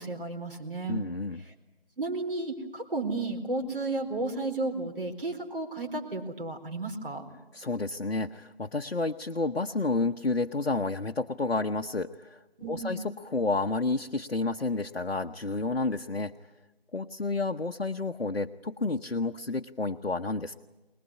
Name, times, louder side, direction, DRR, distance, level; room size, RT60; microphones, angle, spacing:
voice 1, 0.0-1.1 2.0-7.3 12.6-13.0, right 2 dB, 60° right, 1 dB, 4.5 m, -33 dB
voice 2, 0.9-1.4 7.5-12.4 12.7-16.3 16.9-20.6, left 3 dB, 85° left, 6 dB, 0.9 m, -30 dB
22.5 x 20.5 x 9.8 m, 1.1 s
figure-of-eight pair, 160°, 31 cm